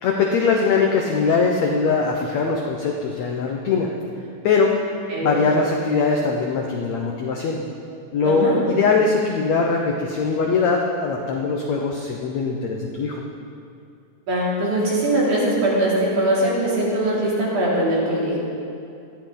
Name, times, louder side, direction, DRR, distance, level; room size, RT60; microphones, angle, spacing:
voice 1, 0.0-3.9 4.4-4.7 5.2-7.6 8.1-13.2, left 4 dB, 80° left, 1 dB, 1.5 m, -21 dB
voice 2, 8.2-8.6 14.3-18.4, right 1 dB, 50° right, -6 dB, 4.6 m, -21 dB
19.0 x 14.0 x 4.0 m, 2.5 s
omnidirectional pair, 4.5 m